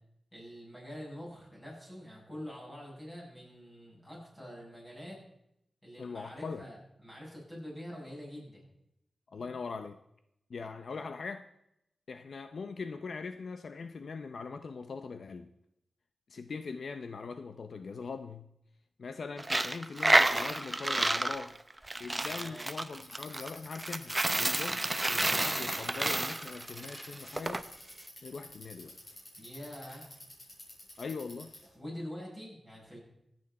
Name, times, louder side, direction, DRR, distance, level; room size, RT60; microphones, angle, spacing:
voice 1, 0.3-5.2 5.8-8.7 22.2-22.7 29.4-30.1 31.7-33.0, equal, 10° left, 7.9 m, -45 dB
voice 2, 6.0-6.7 9.3-10.0 10.5-11.5 12.1-15.5 16.3-18.5 19.0-21.6 22.0-27.6 28.2-29.0 31.0-31.5, left 4 dB, 60° left, 0.7 m, -41 dB
Coin (dropping), 19.4-27.6, right 2 dB, 15° right, 0.7 m, -30 dB
Bicycle, 23.0-31.7, left 1 dB, 40° left, 7.4 m, -49 dB
26.5 x 9.0 x 4.2 m
wide cardioid pair, 160°, 0 cm